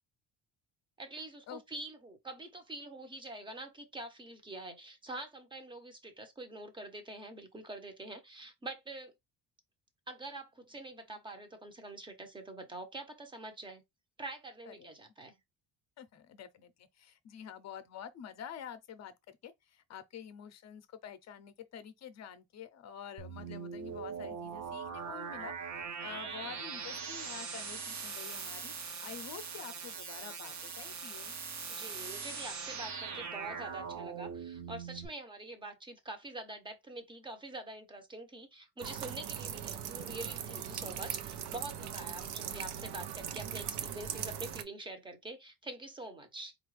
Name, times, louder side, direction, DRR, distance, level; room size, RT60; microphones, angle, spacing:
voice 1, 1.0-9.1 10.1-13.8 14.2-15.3 31.7-46.6, right 2 dB, 10° right, 0.7 m, -45 dB
voice 2, 16.0-25.5 26.0-31.3, left 8 dB, 40° left, 0.6 m, -48 dB
sound 1, 23.2-35.1, right 5 dB, 45° right, 0.8 m, -41 dB
sound 2, 38.8-44.6, right 8 dB, 75° right, 0.7 m, -40 dB
4.3 x 2.4 x 3.2 m
cardioid pair, 160°, 40 cm